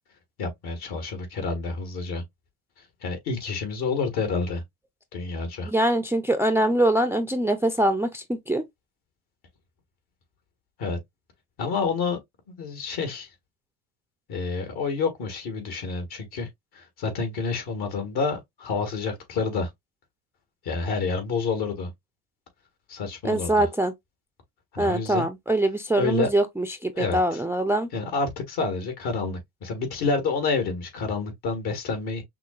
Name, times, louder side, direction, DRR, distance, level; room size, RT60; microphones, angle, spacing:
voice 1, 0.4-2.2 3.0-4.6 5.1-5.7 10.8-11.0 11.6-12.2 12.5-13.3 14.3-16.5 16.7-19.7 20.6-21.9 22.9-23.7 24.7-25.3 26.0-26.3 26.9-27.4 27.9-32.2, left 4 dB, 60° left, 1.8 m, -28 dB
voice 2, 5.6-8.6 23.2-23.9 24.8-27.9, right 1 dB, 5° right, 0.4 m, -23 dB
5.8 x 2.1 x 2.4 m
hypercardioid pair, 75°, 43 cm